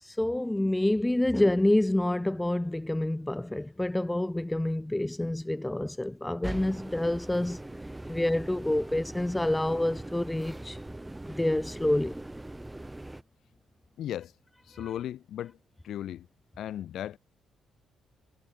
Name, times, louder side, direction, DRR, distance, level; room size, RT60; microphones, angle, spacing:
voice 1, 0.0-7.6 8.1-10.8 11.4-12.2 14.7-14.9, left 1 dB, 10° left, 1.3 m, -27 dB
sound 1, 6.4-13.2, right 1 dB, 10° right, 4.8 m, -41 dB
voice 2, 14.0-14.3 14.7-15.6 15.8-16.3 16.6-17.2, left 11 dB, 75° left, 3.0 m, -36 dB
cardioid pair, 90°, 0 cm